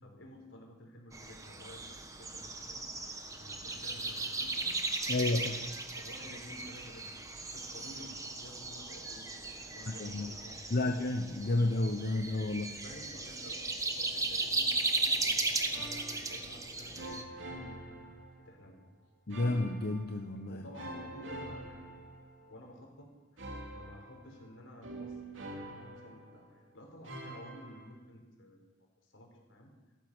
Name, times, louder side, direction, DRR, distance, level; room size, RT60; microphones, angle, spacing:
voice 1, 0.0-4.8 6.0-7.1 7.5-9.3 9.6-10.9 12.7-17.8 18.4-18.8 20.5-22.0 22.4-23.4 23.7-28.6 29.0-29.7, equal, 80° left, 1 dB, 4.6 m, -52 dB
sound 1, 1.1-17.2, right 3 dB, 15° right, 1.3 m, -37 dB
voice 2, 5.1-5.6 10.0-10.3 10.7-12.7 19.3-20.6, left 2 dB, 55° left, 5 dB, 0.9 m, -31 dB
sound 2, 15.7-16.6 16.9-18.6 19.3-20.3 20.8-22.7 23.4-26.6 27.0-28.0, right 1 dB, 70° right, 2.8 m, -46 dB
16.0 x 14.0 x 6.2 m, 1.2 s
head